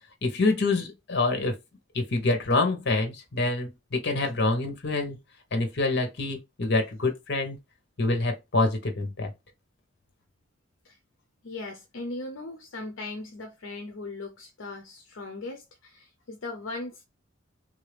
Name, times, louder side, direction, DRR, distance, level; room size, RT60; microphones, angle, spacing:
voice 1, 0.2-1.5 1.9-5.2 5.5-7.6 8.0-9.3, left 2 dB, 60° left, 1.1 m, -26 dB
voice 2, 11.4-17.0, left 2 dB, 75° left, 0.6 m, -38 dB
3.3 x 2.7 x 3.4 m
head